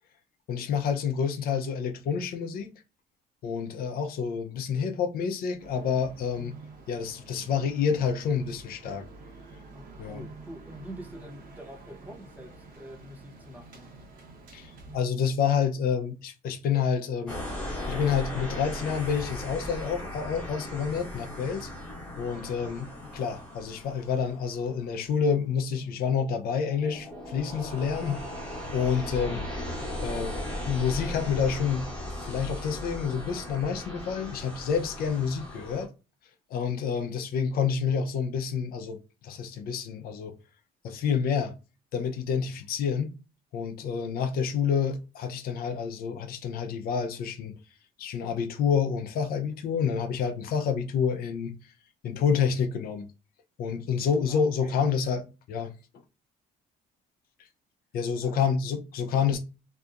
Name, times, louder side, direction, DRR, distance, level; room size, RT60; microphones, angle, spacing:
voice 1, 0.5-2.7 3.4-6.5 6.9-9.0 10.0-10.2 14.5-17.4 17.9-21.7 22.2-28.2 28.7-29.5 30.0-30.4 30.7-31.9 32.2-35.9 36.5-40.3 40.8-41.5 41.9-43.1 43.5-47.5 48.0-51.7 52.0-53.1 53.6-55.7 57.9-59.4, left 6 dB, 60° left, 0.5 m, -28 dB
sound 1, 5.6-15.0, right 3 dB, 55° right, 1.1 m, -48 dB
voice 2, 9.7-13.9 54.3-54.8 58.2-58.4, right 1 dB, 10° right, 0.8 m, -45 dB
sound 2, 17.3-35.8, left 1 dB, 5° left, 1.1 m, -38 dB
2.7 x 2.4 x 2.3 m
cardioid pair, 110°, 17 cm